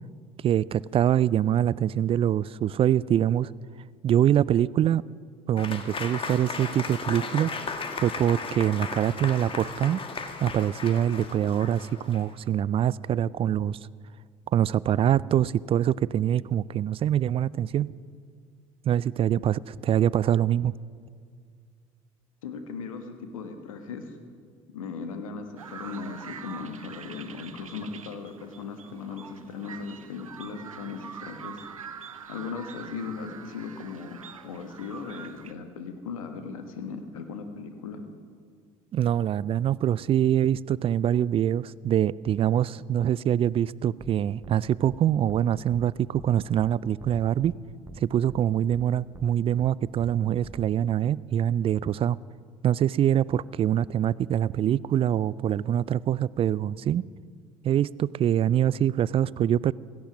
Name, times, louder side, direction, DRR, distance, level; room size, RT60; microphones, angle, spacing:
voice 1, 0.4-3.5 4.0-5.0 5.5-7.5 8.0-10.0 10.4-13.8 14.5-17.9 18.8-20.7 38.9-47.5 48.0-52.2 52.6-57.0 57.6-59.7, right 10 dB, 35° right, 22 dB, 0.4 m, -24 dB
Applause / Crowd, 5.6-12.4, left 4 dB, 30° left, 1.6 m, -36 dB
voice 2, 22.4-24.1 24.7-31.6 32.3-38.0, left 5 dB, 80° left, 7 dB, 1.4 m, -38 dB
sound 1, 25.6-35.5, right 7 dB, 90° right, 0.6 m, -44 dB
sound 2, 44.0-44.1 44.4-44.6 44.8-45.0 45.3-45.4 45.7-45.8 46.1-46.3 46.6-46.7 47.0-47.6 47.8-48.0 48.3-48.4 48.7-48.8 49.1-49.3 49.6-49.7 50.0-50.1 50.4-50.7, right 2 dB, 15° right, 1.0 m, -44 dB
16.5 x 14.0 x 6.1 m, 2.1 s
hypercardioid pair, 65°, 17 cm